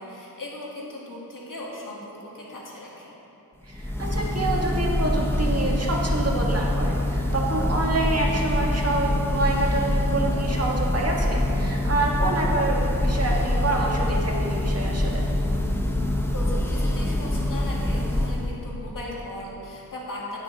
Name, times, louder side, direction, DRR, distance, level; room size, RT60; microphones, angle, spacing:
voice 1, 0.0-3.2 16.3-20.4, left 1 dB, 60° left, -4 dB, 2.2 m, -37 dB
Church bell, 3.7-18.6, left 1 dB, 5° left, 0.9 m, -25 dB
voice 2, 3.7-15.2, right 2 dB, 40° right, -2 dB, 1.6 m, -27 dB
15.5 x 6.1 x 4.0 m, 2.9 s
wide cardioid pair, 70°, 37 cm